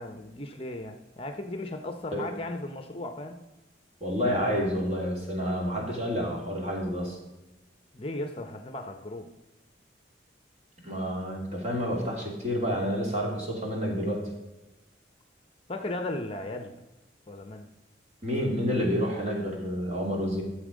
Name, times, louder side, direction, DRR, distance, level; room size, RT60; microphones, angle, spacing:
voice 1, 0.0-3.4 7.9-9.3 15.7-16.8 17.3-17.7, left 1 dB, 30° left, 7 dB, 0.7 m, -36 dB
voice 2, 4.0-7.2 10.8-14.2 18.2-20.4, equal, 35° right, -2 dB, 2.8 m, -29 dB
12.5 x 7.2 x 5.1 m, 1.0 s
head